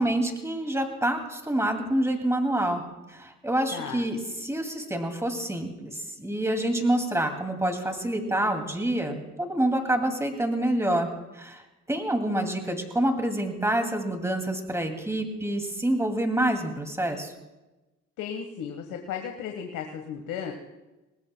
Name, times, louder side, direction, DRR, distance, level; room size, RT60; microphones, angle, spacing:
voice 1, 0.0-2.8 3.1-11.1 11.3-11.6 11.9-17.3, right 1 dB, 10° right, 5 dB, 2.3 m, -27 dB
voice 2, 3.7-4.1 18.2-20.5, left 7 dB, 90° left, 4 dB, 1.3 m, -35 dB
23.5 x 19.5 x 2.2 m, 1.1 s
cardioid pair, 90°, 30 cm